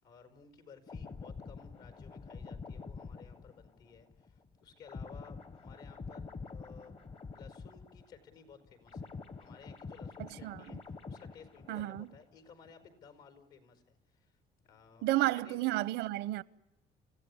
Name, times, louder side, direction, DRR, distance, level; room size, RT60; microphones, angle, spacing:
voice 1, 0.0-7.0 7.3-9.1 9.4-14.4 14.6-15.6, left 6 dB, 75° left, 5.0 m, -57 dB
sound 1, 0.9-8.4 8.6-12.3 12.6-12.9, left 4 dB, 35° left, 1.0 m, -47 dB
voice 2, 10.4-10.8 11.7-12.1 15.0-16.4, right 17 dB, 90° right, 0.8 m, -32 dB
29.0 x 16.0 x 9.8 m
cardioid pair, 110°, 17 cm